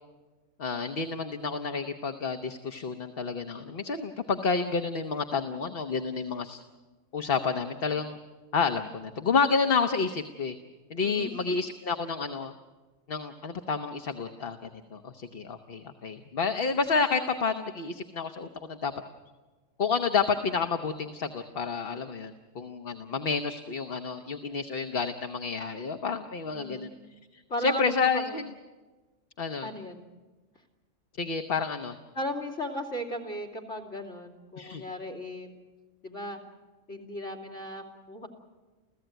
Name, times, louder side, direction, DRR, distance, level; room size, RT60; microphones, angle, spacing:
voice 1, 0.6-6.6 7.1-8.2 8.5-10.6 10.9-12.5 13.1-18.9 19.8-26.9 27.3-28.4 29.4-29.7 31.2-32.0 34.6-34.8, left 5 dB, 50° left, 7 dB, 1.2 m, -30 dB
voice 2, 11.0-11.4 26.5-26.9 27.5-28.4 29.6-30.0 32.1-35.5 36.0-36.4 36.9-38.3, equal, 70° left, 5 dB, 3.3 m, -36 dB
30.0 x 15.0 x 9.1 m, 1.3 s
omnidirectional pair, 1.3 m